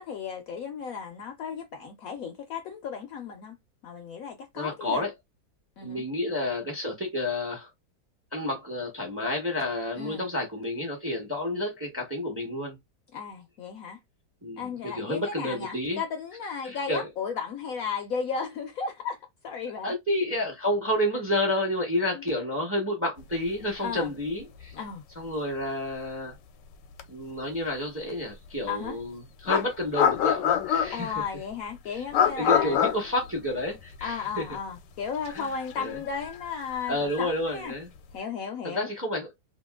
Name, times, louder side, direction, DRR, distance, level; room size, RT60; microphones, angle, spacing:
voice 1, 0.0-3.6 3.8-5.0 5.8-6.0 10.0-10.2 13.1-14.0 14.6-19.2 19.4-19.9 22.1-22.2 23.8-24.1 24.8-25.0 28.7-29.0 30.9-32.8 34.0-37.7 38.1-38.9, left 6 dB, 70° left, 0.9 m, -34 dB
voice 2, 4.5-5.1 5.8-7.7 8.3-12.8 14.4-16.0 16.6-17.1 19.8-24.7 25.2-26.4 27.1-31.1 31.9-32.0 32.3-34.5 35.3-35.4 35.8-36.0 36.9-37.9 38.6-39.3, left 1 dB, 10° right, 0.7 m, -30 dB
sound 1, 24.3-24.4 24.6-24.8 27.0-27.1 28.8-28.9 29.5-31.2 32.1-34.1 34.4-34.5 35.3-37.6, left 9 dB, 90° left, 1.2 m, -26 dB
2.9 x 2.8 x 2.3 m
omnidirectional pair, 1.8 m